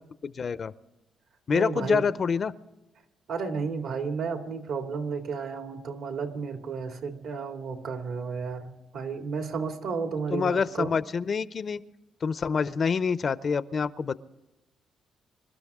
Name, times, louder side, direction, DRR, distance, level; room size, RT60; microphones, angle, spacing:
voice 1, 0.2-0.7 1.5-2.5 10.3-11.8 12.2-14.1, left 6 dB, 45° left, 15 dB, 0.6 m, -27 dB
voice 2, 1.5-2.1 3.3-10.9, right 5 dB, 75° right, 4 dB, 2.5 m, -32 dB
26.5 x 13.0 x 3.7 m, 1.0 s
cardioid pair, 90°, 0 cm